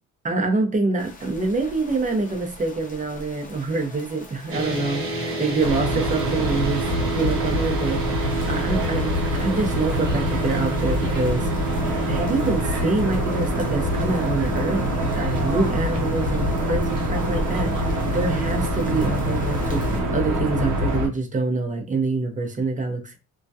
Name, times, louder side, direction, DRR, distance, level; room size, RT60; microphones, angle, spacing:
voice 1, 0.2-6.8 7.2-11.5 12.1-14.8 15.1-23.2, right 3 dB, 25° right, 0.7 m, -26 dB
sound 1, 1.0-20.0, left 2 dB, 25° left, 0.7 m, -43 dB
sound 2, 4.5-20.9, right 1 dB, 45° right, 0.9 m, -31 dB
sound 3, 5.6-21.1, equal, 85° right, 0.7 m, -25 dB
2.3 x 2.1 x 2.6 m
cardioid pair, 90°, 30 cm